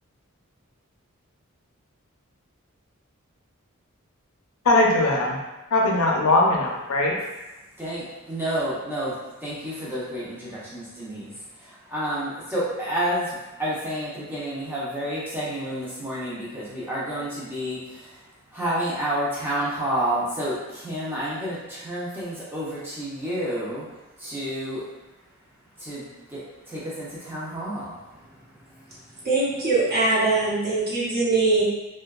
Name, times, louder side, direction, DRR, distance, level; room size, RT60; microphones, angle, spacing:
voice 1, 4.6-5.4 5.7-7.1, left 2 dB, 70° left, -1 dB, 0.5 m, -20 dB
voice 2, 7.8-24.9 25.7-28.0, right 1 dB, 10° right, -8 dB, 0.5 m, -30 dB
voice 3, 29.2-31.6, right 3 dB, 45° right, -8 dB, 0.8 m, -22 dB
2.7 x 2.2 x 2.3 m, 1.0 s
head